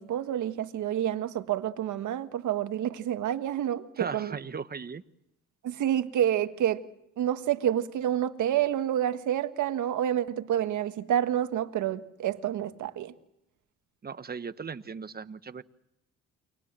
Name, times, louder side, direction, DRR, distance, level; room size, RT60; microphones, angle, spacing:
voice 1, 0.0-4.4 5.6-6.8 7.2-13.1, right 11 dB, 75° right, 1.7 m, -28 dB
voice 2, 4.0-5.0 14.0-15.6, right 5 dB, 30° right, 1.3 m, -37 dB
29.5 x 23.5 x 7.6 m
cardioid pair, 90°, 30 cm